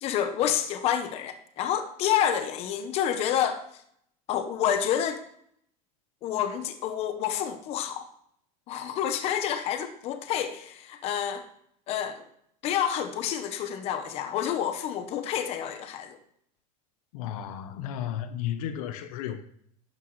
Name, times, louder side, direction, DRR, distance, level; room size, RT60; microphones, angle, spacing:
voice 1, 0.0-3.6 4.3-5.2 6.2-8.1 8.7-11.4 11.9-12.2 12.6-16.2, left 9 dB, 30° left, 0.9 m, -28 dB
voice 2, 17.1-19.4, left 10 dB, 65° left, 0.9 m, -33 dB
12.0 x 9.5 x 3.2 m
supercardioid pair, 170°, 20 cm